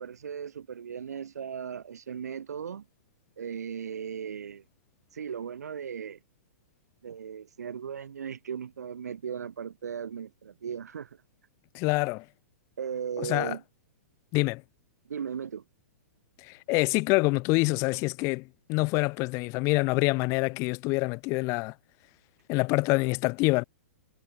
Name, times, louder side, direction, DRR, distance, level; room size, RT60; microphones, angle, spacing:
voice 1, 0.0-2.9 3.4-4.6 5.1-6.2 7.0-11.2 12.8-13.6 15.1-15.6, right 7 dB, 85° right, 2.4 m, -37 dB
voice 2, 11.7-12.2 13.2-13.6 14.3-14.6 16.4-21.7 22.5-23.6, left 26 dB, 35° left, 0.7 m, -26 dB
hypercardioid pair, 130°, 9 cm